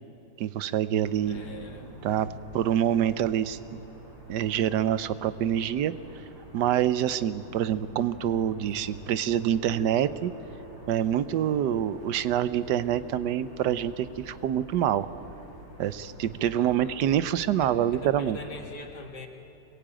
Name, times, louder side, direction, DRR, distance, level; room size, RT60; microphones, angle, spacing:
voice 1, 0.4-1.4 2.0-2.3 2.5-3.8 4.3-5.9 6.5-10.3 10.9-15.1 15.8-18.4, right 10 dB, 75° right, 14 dB, 1.4 m, -26 dB
sound 1, 1.0-18.7, right 1 dB, 45° right, 5.5 m, -47 dB
voice 2, 1.3-1.9 8.6-8.7 16.6-17.0 17.6-19.3, left 2 dB, 70° left, 3 dB, 2.6 m, -43 dB
24.5 x 22.0 x 8.9 m, 2.9 s
omnidirectional pair, 1.8 m